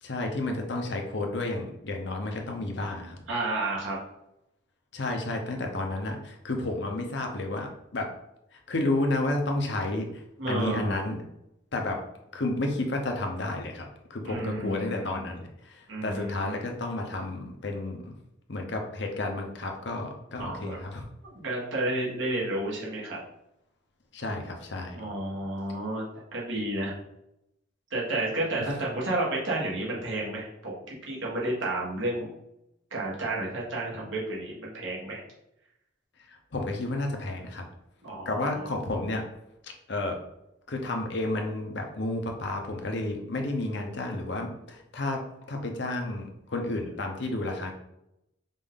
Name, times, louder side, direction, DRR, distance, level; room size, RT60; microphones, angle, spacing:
voice 1, 0.0-3.2 4.9-8.1 8.5-11.2 11.7-12.0 12.3-18.1 18.5-21.1 24.1-25.1 28.6-28.8 36.3-37.6 38.2-39.2 39.6-40.2 40.7-47.7, left 2 dB, 60° left, 2 dB, 0.7 m, -31 dB
voice 2, 3.3-4.0 10.4-11.0 14.2-15.3 15.9-16.6 20.4-20.8 21.2-23.2 24.9-26.1 26.3-26.9 27.9-32.4 32.9-35.2 38.0-38.7, right 2 dB, 75° right, -5 dB, 1.6 m, -31 dB
5.2 x 2.6 x 3.6 m, 0.84 s
head